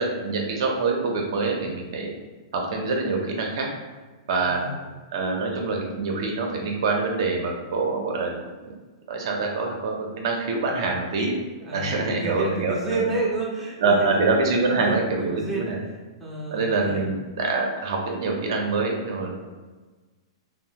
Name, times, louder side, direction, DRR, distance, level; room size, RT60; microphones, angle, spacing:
voice 1, 0.0-2.1 2.5-3.7 4.3-4.6 5.1-8.3 9.1-11.4 11.7-13.0 13.8-15.8 16.5-19.5, right 3 dB, 65° right, 0 dB, 0.6 m, -25 dB
voice 2, 4.4-4.9 11.6-17.1, right 2 dB, 10° right, -6 dB, 0.6 m, -31 dB
2.9 x 2.0 x 2.8 m, 1.3 s
hypercardioid pair, 145°, 3 cm